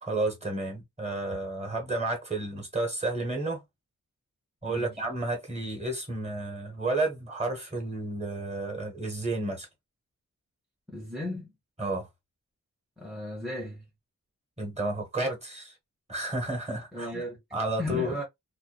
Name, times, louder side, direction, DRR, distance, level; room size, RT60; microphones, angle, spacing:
voice 1, 0.0-3.6 4.6-9.7 11.8-12.1 14.6-15.7 16.1-17.2 17.5-18.1, right 2 dB, 20° right, 1.1 m, -31 dB
voice 2, 4.6-5.0 10.9-11.5 13.0-13.8 16.9-17.4 17.8-18.2, left 1 dB, ahead, 0.7 m, -35 dB
2.5 x 2.2 x 2.3 m
wide cardioid pair, 90°, 34 cm